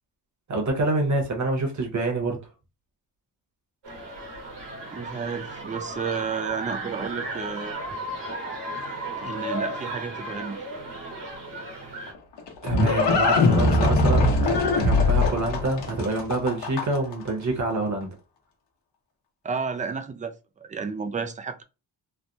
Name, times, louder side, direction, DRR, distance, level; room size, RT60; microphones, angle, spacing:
voice 1, 0.5-2.4 12.6-18.1, right 2 dB, 45° right, 1.1 m, -27 dB
sound 1, 3.8-12.1, right 1 dB, 90° right, 1.4 m, -35 dB
voice 2, 4.9-7.7 9.2-10.6 19.4-21.6, right 5 dB, 20° right, 0.3 m, -31 dB
Livestock farm animals working animals, 12.1-17.1, left 2 dB, 80° left, 1.0 m, -21 dB
3.3 x 2.1 x 2.6 m
wide cardioid pair, 130°, 41 cm